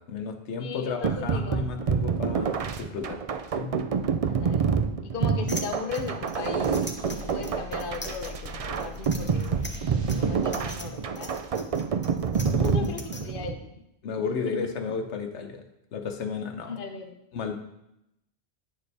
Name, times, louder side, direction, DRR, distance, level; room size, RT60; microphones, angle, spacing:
voice 1, 0.0-3.2 3.5-3.8 12.5-12.9 14.0-15.6 15.9-16.7 17.3-17.5, left 5 dB, 85° left, 6 dB, 1.1 m, -33 dB
voice 2, 0.6-1.7 4.3-4.7 5.0-6.8 7.2-9.6 10.2-11.4 11.8-12.0 12.6-13.8 14.3-14.7 16.6-17.2, left 4 dB, 55° left, 5 dB, 1.0 m, -37 dB
sound 1, 1.0-13.6, right 6 dB, 55° right, 0.4 m, -27 dB
sound 2, 5.5-13.2, left 1 dB, 10° left, 0.6 m, -41 dB
sound 3, 6.3-11.7, left 4 dB, 75° right, 2.1 m, -44 dB
9.8 x 6.8 x 3.3 m, 0.86 s
omnidirectional pair, 1.1 m